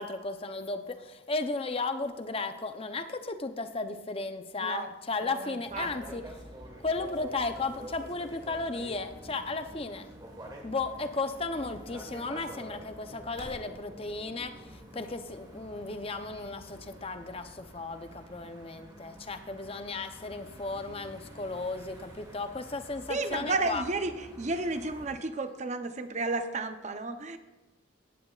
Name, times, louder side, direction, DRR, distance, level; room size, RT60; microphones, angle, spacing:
voice 1, 0.0-6.2 6.8-10.1 10.6-23.8, left 3 dB, 30° left, 8 dB, 0.7 m, -35 dB
voice 2, 4.6-4.9 5.2-6.2 23.1-27.4, right 3 dB, 35° right, 9 dB, 0.7 m, -33 dB
sound 1, 5.7-25.1, right 1 dB, 20° right, 1.5 m, -48 dB
17.0 x 11.5 x 2.4 m, 1.2 s
head